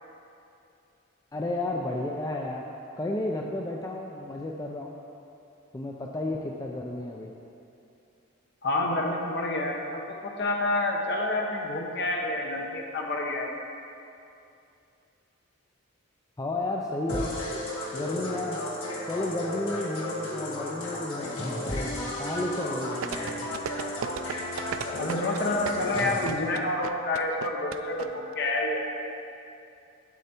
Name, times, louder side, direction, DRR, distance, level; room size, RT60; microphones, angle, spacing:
voice 1, 1.3-2.6 3.0-5.0 5.7-7.3 16.4-17.3 17.9-18.6 19.1-23.5, left 2 dB, 15° left, -1 dB, 0.4 m, -32 dB
voice 2, 8.6-13.5 24.9-28.9, left 2 dB, 50° left, 0 dB, 1.0 m, -28 dB
sound 1, 17.1-26.2, left 1 dB, 75° left, 1.7 m, -33 dB
sound 2, 23.0-28.1 28.3-28.4, right 7 dB, 70° right, 0.4 m, -34 dB
8.3 x 7.9 x 4.4 m, 2.7 s
head